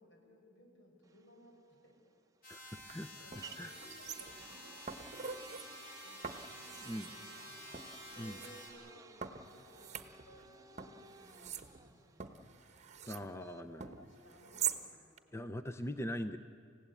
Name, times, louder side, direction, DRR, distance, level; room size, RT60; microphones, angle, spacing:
voice 1, 0.0-2.0 2.5-15.2, equal, 75° left, 1 dB, 5.7 m, -61 dB
sound 1, 1.0-14.9, right 4 dB, 15° right, 0.8 m, -56 dB
sound 2, 2.4-8.7, left 1 dB, 45° left, 5.8 m, -51 dB
voice 2, 2.5-3.7 6.9-7.1 8.2-8.4 13.1-13.9 15.3-16.4, equal, 15° left, 8 dB, 0.5 m, -42 dB
sound 3, 2.8-2.9 3.3-4.5 4.9-5.7 6.2-7.1 7.7-8.5 9.2-10.5 10.8-13.3 13.8-14.8 15.2-15.3, right 8 dB, 35° right, 1.1 m, -44 dB
29.5 x 16.5 x 8.4 m, 2.3 s
head